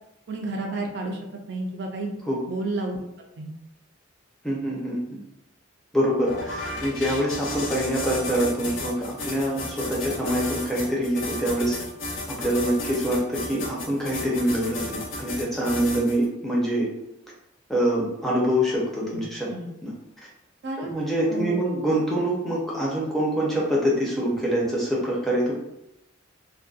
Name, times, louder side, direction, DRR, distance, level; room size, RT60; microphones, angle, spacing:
voice 1, 0.3-1.2 1.5-2.1 2.5-3.0 3.4-3.5 19.1-19.2 19.5-19.7 20.6-21.0 21.3-21.6, right 2 dB, 55° right, 1 dB, 0.3 m, -30 dB
voice 2, 4.4-5.2 5.9-11.8 12.4-16.9 17.7-19.5 19.8-19.9 20.9-25.5, equal, ahead, -5 dB, 0.5 m, -25 dB
sound 1, 6.2-16.3, left 2 dB, 65° left, 0.5 m, -33 dB
2.6 x 2.1 x 2.3 m, 0.87 s
head